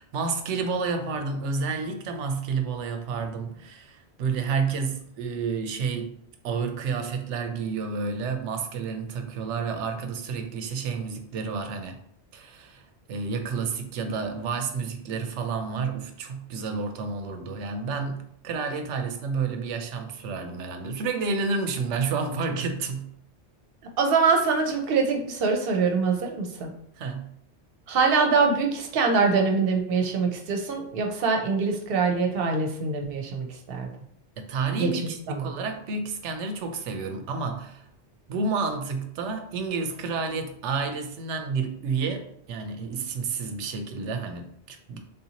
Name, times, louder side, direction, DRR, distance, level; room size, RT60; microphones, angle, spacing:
voice 1, 0.1-6.2 6.4-12.0 12.3-23.1 27.0-27.3 34.4-37.9 38.3-45.0, right 4 dB, 90° right, 6 dB, 0.9 m, -30 dB
voice 2, 24.0-26.7 27.9-33.9 34.8-34.9 35.3-35.5, right 4 dB, 60° right, 2 dB, 0.8 m, -24 dB
3.6 x 2.7 x 2.8 m, 0.69 s
omnidirectional pair, 1.2 m